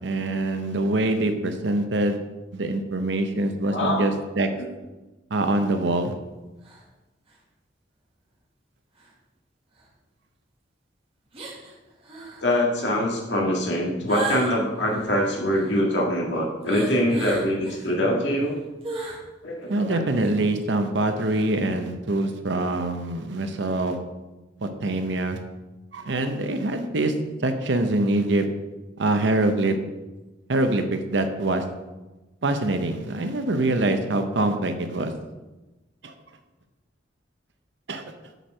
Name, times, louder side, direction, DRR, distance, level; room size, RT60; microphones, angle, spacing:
voice 1, 0.0-2.2 2.5-4.5 5.3-6.1 19.7-24.0 24.6-25.4 25.9-27.1 27.4-28.5 29.0-29.7 30.5-31.6 32.4-35.1 36.0-36.1 37.9-38.0, right 2 dB, 70° right, 7 dB, 0.7 m, -24 dB
voice 2, 3.7-4.1 4.6-4.7 12.4-18.6 19.4-20.1, equal, 70° left, -1 dB, 1.9 m, -24 dB
sound 1, 6.6-6.8 7.3-7.4 9.0-9.1 9.8-9.9 11.3-11.7 12.0-12.5 14.1-15.8 16.6-18.0 18.3-19.2 19.7-19.8 20.1-20.4 21.2-21.4, right 2 dB, 30° right, 1.7 m, -36 dB
8.0 x 4.4 x 6.2 m, 1.1 s
head